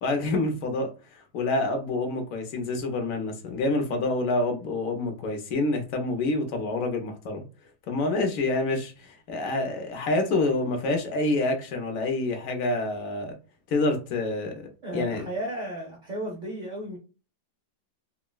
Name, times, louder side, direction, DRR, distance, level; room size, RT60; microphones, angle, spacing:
voice 1, 0.0-7.4 7.9-13.3 13.7-15.2, left 2 dB, 65° left, 0.9 m, -27 dB
voice 2, 14.8-17.0, right 1 dB, 65° right, 0.4 m, -34 dB
3.7 x 2.1 x 2.2 m
omnidirectional pair, 1.8 m